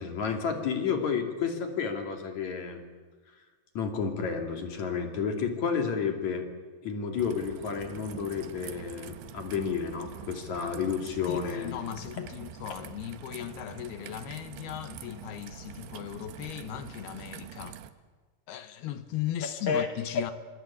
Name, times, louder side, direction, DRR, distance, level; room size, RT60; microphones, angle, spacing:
voice 1, 0.0-2.8 3.8-6.5 6.8-11.8 19.7-19.9, left 6 dB, 45° left, 3.4 m, -31 dB
Raindrop / Trickle dribble, 7.2-17.9, right 10 dB, 75° right, 3.1 m, -45 dB
voice 2, 11.3-17.8 18.5-20.3, left 12 dB, 70° left, 2.9 m, -37 dB
26.0 x 25.0 x 8.7 m
omnidirectional pair, 5.0 m